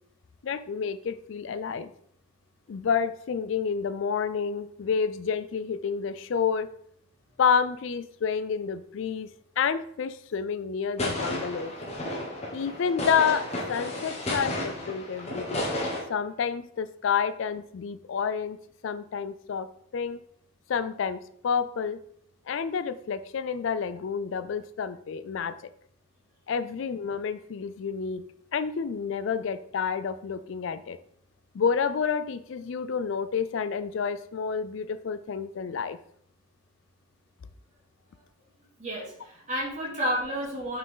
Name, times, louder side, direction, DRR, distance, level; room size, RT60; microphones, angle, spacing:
voice 1, 0.4-1.9 2.7-6.7 7.4-9.3 9.6-11.7 12.5-15.7 16.1-18.6 18.8-20.2 20.7-22.0 22.5-25.6 26.5-28.2 28.5-31.0 31.5-36.0, left 6 dB, 70° left, 13 dB, 0.4 m, -29 dB
sound 1, 11.0-16.0, left 1 dB, 30° left, 1.4 m, -32 dB
voice 2, 38.8-40.8, equal, 35° right, -4 dB, 2.4 m, -31 dB
5.8 x 4.7 x 3.9 m, 0.65 s
head